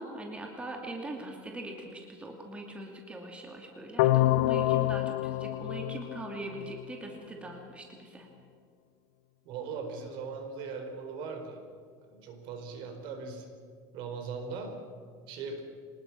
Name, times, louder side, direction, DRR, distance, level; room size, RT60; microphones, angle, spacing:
voice 1, 0.0-8.3, right 2 dB, 10° right, 2 dB, 2.4 m, -41 dB
sound 1, 4.0-7.0, left 16 dB, 85° left, 0.5 m, -27 dB
voice 2, 9.4-11.6 12.0-13.5 13.9-14.8 15.3-15.6, right 4 dB, 60° right, 5 dB, 4.6 m, -39 dB
25.5 x 19.5 x 6.1 m, 2.1 s
cardioid pair, 145°, 9 cm